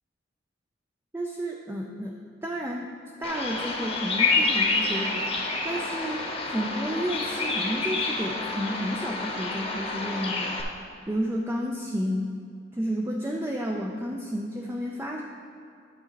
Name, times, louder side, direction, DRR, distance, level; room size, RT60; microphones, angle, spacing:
voice 1, 1.1-2.9 3.2-5.3 5.6-10.6 11.1-12.3 12.7-15.2, equal, 15° right, 0 dB, 0.5 m, -31 dB
Bird vocalization bird call bird song, 3.2-10.6, left 3 dB, 35° left, 1.0 m, -28 dB
11.0 x 3.7 x 5.8 m, 2.5 s
head